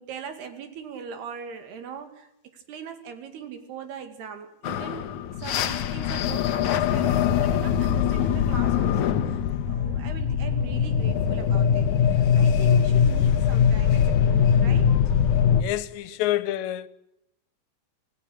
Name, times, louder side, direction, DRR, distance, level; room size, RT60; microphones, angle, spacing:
voice 1, 0.0-14.9 16.1-16.2 16.6-16.7, right 7 dB, 70° right, 4.2 m, -41 dB
sound 1, 4.6-15.6, left 8 dB, 70° left, 1.9 m, -22 dB
sound 2, 10.4-15.7, right 3 dB, 85° right, 4.5 m, -43 dB
voice 2, 15.6-16.9, left 14 dB, 85° left, 3.2 m, -28 dB
26.5 x 17.0 x 8.5 m
omnidirectional pair, 5.0 m